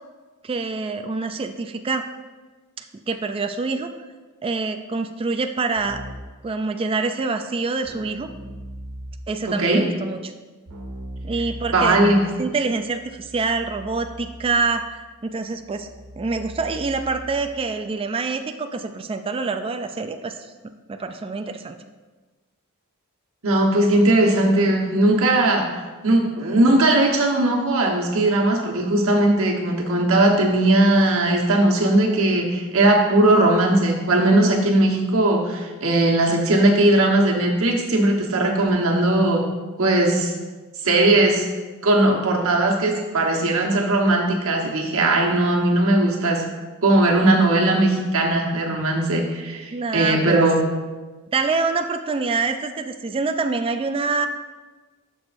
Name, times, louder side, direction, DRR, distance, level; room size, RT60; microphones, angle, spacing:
voice 1, 0.4-2.1 2.8-3.9 4.4-6.0 6.4-8.3 9.3-10.3 11.2-12.0 12.4-15.9 16.2-20.4 20.9-21.8 49.7-50.4 51.3-54.3, right 4 dB, 25° right, 7 dB, 0.3 m, -26 dB
Keyboard (musical), 5.8-6.4 7.8-9.4 10.7-17.7, right 1 dB, 90° right, 1.4 m, -39 dB
voice 2, 9.5-9.8 11.7-12.2 23.4-25.6 26.0-39.4 39.8-40.3 40.8-41.4 41.8-46.4 46.8-50.6, right 2 dB, 65° right, 0 dB, 1.3 m, -18 dB
12.0 x 6.2 x 2.6 m, 1.3 s
head